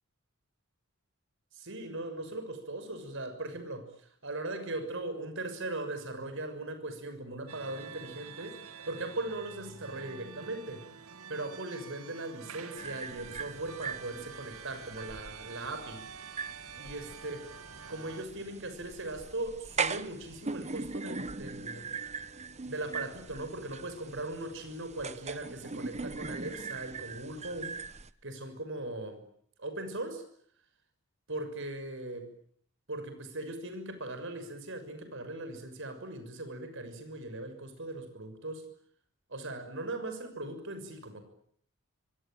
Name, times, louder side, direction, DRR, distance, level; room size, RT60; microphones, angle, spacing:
voice 1, 1.5-8.6 8.8-10.9 11.3-16.1 16.8-17.4 17.9-21.9 22.6-27.8 28.2-29.2 29.6-30.2 31.3-32.3 32.9-38.7 39.3-41.2, right 2 dB, 60° right, 9 dB, 6.5 m, -39 dB
sound 1, 7.5-18.3, right 6 dB, 90° right, 2.2 m, -48 dB
sound 2, 12.8-28.1, right 4 dB, 30° right, 1.1 m, -40 dB
25.0 x 25.0 x 9.0 m, 0.65 s
head